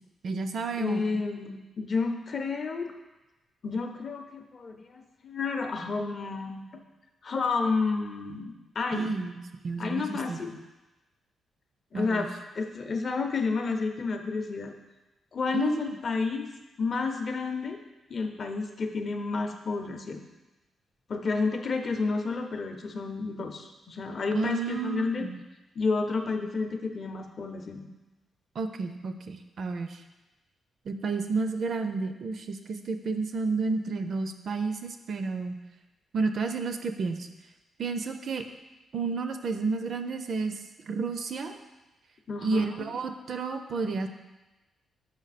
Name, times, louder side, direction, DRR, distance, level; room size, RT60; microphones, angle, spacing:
voice 1, 0.2-1.0 8.9-9.4 9.6-10.4 11.9-12.3 15.5-16.0 24.3-25.4 28.6-30.0 30.9-35.6 36.1-37.3 37.8-38.4 38.9-41.6 42.4-44.1, right 4 dB, 50° right, 7 dB, 0.4 m, -31 dB
voice 2, 0.8-2.9 3.6-6.6 7.2-9.1 9.8-10.6 11.9-12.3 12.5-14.7 15.3-16.5 16.8-17.8 18.1-20.2 21.1-25.3 25.8-27.9 42.3-42.9, left 4 dB, 40° left, 5 dB, 0.6 m, -30 dB
6.4 x 4.8 x 4.1 m, 1.1 s
wide cardioid pair, 145°, 0 cm